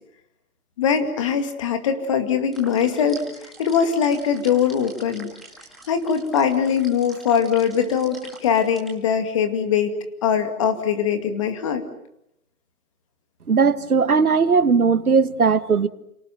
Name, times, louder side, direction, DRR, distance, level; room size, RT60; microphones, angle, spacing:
voice 1, 0.8-5.3 5.9-9.9 10.2-11.8, left 7 dB, 20° left, 8 dB, 2.3 m, -22 dB
sound 1, 2.5-8.9, right 2 dB, ahead, 2.0 m, -45 dB
voice 2, 13.5-15.9, right 5 dB, 75° right, 12 dB, 1.9 m, -18 dB
29.5 x 18.5 x 9.2 m, 0.80 s
hypercardioid pair, 165°, 44 cm